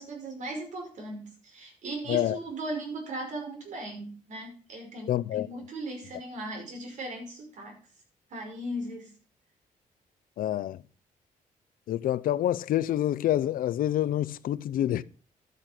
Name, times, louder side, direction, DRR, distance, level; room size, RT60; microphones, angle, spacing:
voice 1, 0.0-7.8 8.3-9.1, right 1 dB, 55° right, 5.5 m, -38 dB
voice 2, 5.1-5.5 10.4-10.8 11.9-15.0, left 12 dB, 75° left, 0.6 m, -27 dB
12.5 x 8.5 x 5.9 m
wide cardioid pair, 170°, 15 cm